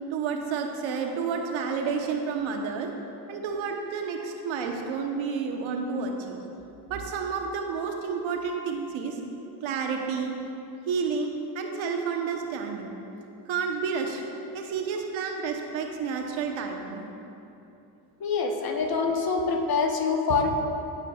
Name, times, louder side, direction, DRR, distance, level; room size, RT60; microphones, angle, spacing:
voice 1, 0.1-2.9 3.3-6.4 6.9-9.2 9.6-10.4 10.9-13.0 13.5-14.2 14.5-17.0, right 5 dB, 65° right, 3 dB, 1.1 m, -30 dB
voice 2, 18.2-20.5, left 4 dB, 45° left, 2 dB, 1.2 m, -25 dB
16.5 x 5.7 x 2.4 m, 2.9 s
supercardioid pair, 85°, 50 cm